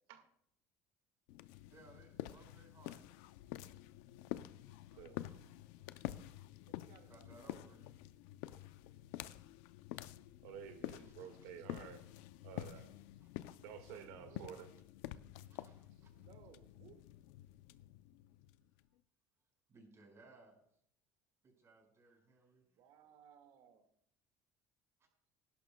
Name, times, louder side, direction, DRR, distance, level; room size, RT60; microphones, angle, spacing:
sound 1, 1.3-18.8, left 14 dB, 85° left, 0.5 m, -49 dB
voice 1, 1.7-3.0 4.9-5.6 7.0-7.9 10.9-11.3 13.2-13.6 13.9-14.0 15.5-16.1 19.7-20.6 21.4-22.7, right 3 dB, 35° right, 1 dB, 5.2 m, -63 dB
voice 2, 6.7-7.5 13.8-14.7 16.2-17.0 22.7-23.9, right 8 dB, 70° right, 6 dB, 1.9 m, -62 dB
voice 3, 10.4-12.0 12.4-12.9 13.6-14.7, right 8 dB, 85° right, 7 dB, 1.7 m, -51 dB
18.0 x 11.5 x 2.3 m, 0.69 s
supercardioid pair, 110°, 8 cm